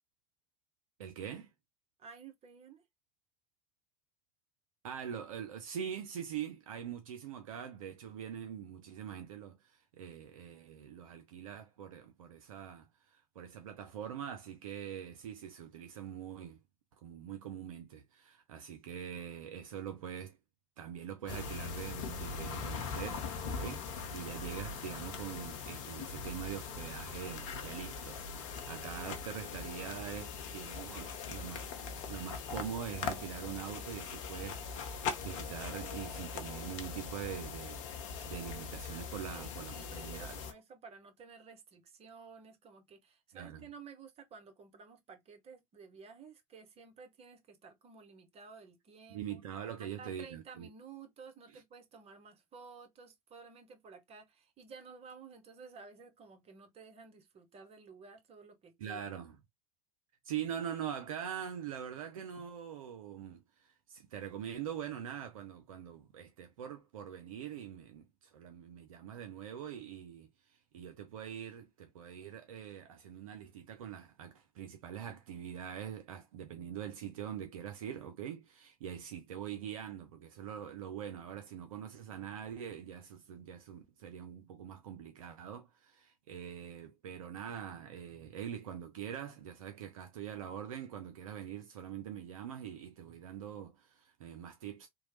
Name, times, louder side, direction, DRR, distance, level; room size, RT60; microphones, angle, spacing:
voice 1, 1.0-1.5 4.8-16.6 17.0-20.4 20.8-31.7 32.1-37.8 38.3-40.4 43.3-43.7 49.1-50.7 58.8-59.4 60.2-94.9, right 9 dB, 70° right, 0.5 m, -43 dB
voice 2, 2.0-2.8 39.3-49.4 49.8-59.0, right 5 dB, 35° right, 1.0 m, -53 dB
sound 1, 21.3-40.5, left 5 dB, 60° left, 0.7 m, -41 dB
3.0 x 2.2 x 2.9 m
figure-of-eight pair, 70°, 18 cm